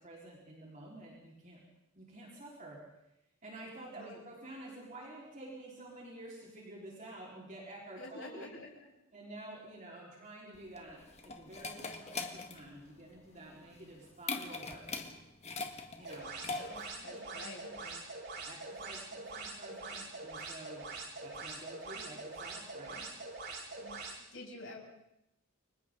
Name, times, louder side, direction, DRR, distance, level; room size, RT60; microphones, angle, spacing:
voice 1, 0.0-1.6 1.9-2.8 3.4-8.5 9.1-11.0 11.2-14.8 16.0-17.8 18.4-23.0, right 1 dB, 35° right, -4 dB, 4.8 m, -50 dB
voice 2, 3.9-4.2 8.0-8.7 17.0-18.0 23.8-24.8, left 2 dB, 65° left, -2 dB, 7.4 m, -48 dB
sound 1, 10.5-17.0, left 3 dB, 30° left, 1.8 m, -42 dB
sound 2, 16.0-24.2, right 3 dB, 55° right, 7.3 m, -44 dB
29.5 x 25.0 x 4.0 m, 0.82 s
head